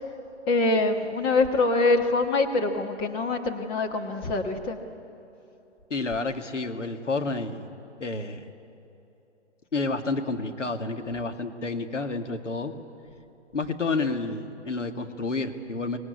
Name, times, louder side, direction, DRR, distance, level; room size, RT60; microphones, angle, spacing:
voice 1, 0.5-4.8, left 3 dB, 15° left, 3 dB, 1.3 m, -24 dB
voice 2, 5.9-7.7 8.0-8.5 9.7-12.7 13.5-16.0, left 3 dB, 80° left, 6 dB, 2.2 m, -30 dB
24.0 x 19.0 x 9.6 m, 2.9 s
figure-of-eight pair, 145°, 36 cm